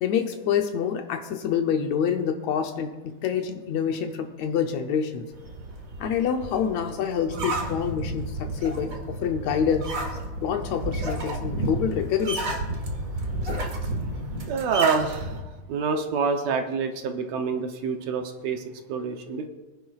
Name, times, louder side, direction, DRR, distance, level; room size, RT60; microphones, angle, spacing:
voice 1, 0.0-5.3 6.0-9.9 10.4-12.6, left 7 dB, 75° left, 5 dB, 1.9 m, -27 dB
sound 1, 5.3-15.4, right 1 dB, 40° right, 1.4 m, -31 dB
voice 2, 14.5-15.4 15.7-18.6 18.9-19.5, right 5 dB, 70° right, 5 dB, 1.9 m, -27 dB
23.0 x 10.5 x 2.4 m, 1.2 s
omnidirectional pair, 3.5 m